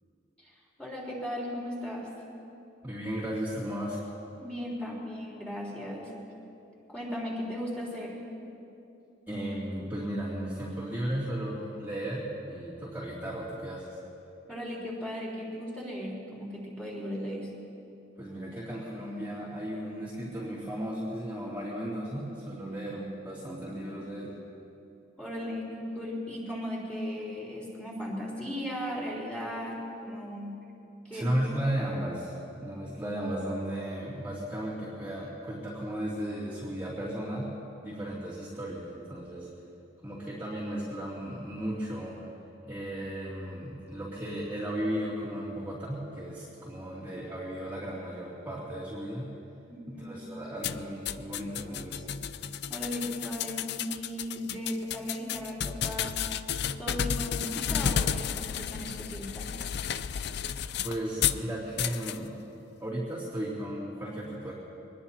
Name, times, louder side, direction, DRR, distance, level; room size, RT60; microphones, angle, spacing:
voice 1, 0.4-2.1 4.4-6.1 6.9-8.2 14.5-17.5 25.2-30.6 31.0-31.3 49.7-50.1 52.7-56.2 56.8-59.5, equal, 5° left, -5 dB, 3.9 m, -37 dB
voice 2, 2.8-4.0 9.3-14.0 18.2-24.4 31.1-37.5 37.8-39.5 40.0-42.2 42.6-49.3 49.9-52.0 60.8-62.4 62.8-64.5, right 1 dB, 10° right, -10 dB, 2.6 m, -35 dB
sound 1, 50.6-61.4 61.8-62.2, left 8 dB, 60° left, 0.4 m, -32 dB
24.5 x 20.5 x 2.9 m, 2.7 s
head